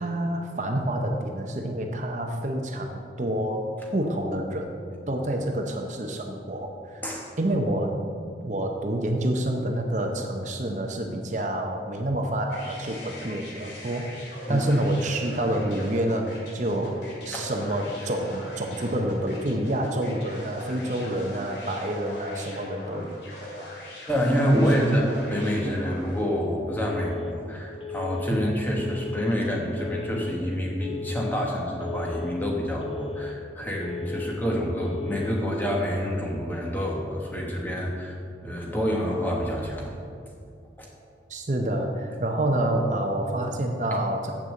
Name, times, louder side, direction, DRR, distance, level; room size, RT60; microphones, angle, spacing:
voice 1, 0.0-4.8 5.1-7.0 7.4-8.0 8.4-23.2 24.8-25.0 28.3-28.4 41.3-44.3, right 1 dB, 40° right, 3 dB, 0.7 m, -28 dB
sound 1, 12.5-26.3, left 1 dB, 80° left, 2.5 m, -41 dB
voice 2, 14.5-14.8 17.3-17.5 24.1-38.2 38.4-39.9 40.8-40.9, equal, 10° left, -2 dB, 1.3 m, -27 dB
Telephone, 26.8-27.3 27.8-28.3 28.8-29.3 29.8-30.3 30.8-31.3 31.8-32.3 32.8-33.3 33.8-34.3 34.8-35.3, left 4 dB, 30° left, 0.6 m, -36 dB
7.4 x 6.6 x 7.5 m, 2.4 s
head